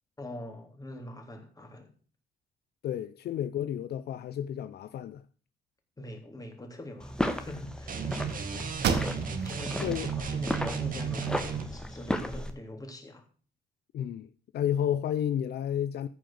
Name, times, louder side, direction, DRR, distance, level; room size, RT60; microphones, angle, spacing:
voice 1, 0.2-1.9 6.0-8.1 9.4-13.2, left 1 dB, 20° left, 3.3 m, -43 dB
voice 2, 2.8-5.2 8.5-8.8 9.8-10.1 13.9-16.1, left 10 dB, 70° left, 0.6 m, -31 dB
sound 1, 7.0-12.5, equal, 5° left, 1.6 m, -35 dB
sound 2, 7.9-11.7, right 6 dB, 50° right, 1.8 m, -34 dB
sound 3, 8.8-9.6 10.1-10.2 10.7-11.6, right 6 dB, 80° right, 1.8 m, -33 dB
14.5 x 5.0 x 7.8 m
cardioid pair, 85°, 17 cm